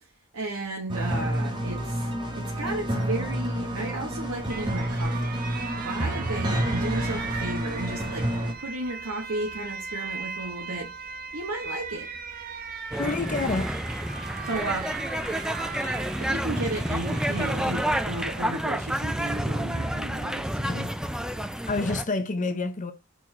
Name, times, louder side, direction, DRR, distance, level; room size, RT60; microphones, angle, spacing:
voice 1, 0.3-2.1 2.3-5.4 5.8-8.3 8.6-12.1 14.4-15.0 16.2-20.8, right 2 dB, 80° right, 1.3 m, -34 dB
sound 1, 0.9-8.5, right 1 dB, 20° right, 1.3 m, -29 dB
Alarm, 4.0-21.2, right 5 dB, 45° right, 0.9 m, -39 dB
sound 2, 12.9-22.0, equal, 5° right, 0.5 m, -29 dB
voice 2, 13.0-13.8 20.6-20.9 21.7-22.9, left 3 dB, 35° left, 0.7 m, -28 dB
4.6 x 4.4 x 5.9 m
head